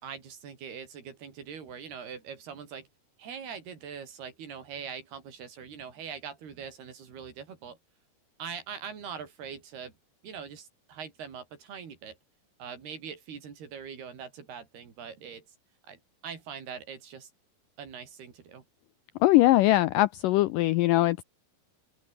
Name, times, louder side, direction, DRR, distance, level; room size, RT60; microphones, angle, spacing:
voice 1, 0.0-2.9 3.2-7.8 8.4-9.9 10.2-12.2 12.6-15.4 15.9-17.3 17.8-18.6, right 7 dB, 80° right, 6.0 m, -42 dB
voice 2, 19.2-21.2, left 17 dB, 80° left, 1.9 m, -21 dB
open air
omnidirectional pair, 4.5 m